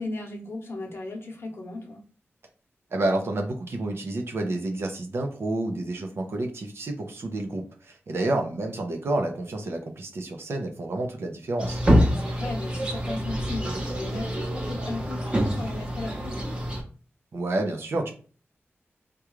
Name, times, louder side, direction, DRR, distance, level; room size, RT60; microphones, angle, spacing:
voice 1, 0.0-2.0 8.1-8.3 12.2-16.6, left 2 dB, 60° left, 1 dB, 0.8 m, -36 dB
voice 2, 2.9-11.8 17.3-18.1, right 2 dB, 60° right, 3 dB, 0.6 m, -29 dB
sound 1, 11.6-16.8, equal, 20° right, 0.8 m, -26 dB
3.6 x 2.3 x 3.0 m, 0.39 s
wide cardioid pair, 130°, 5 cm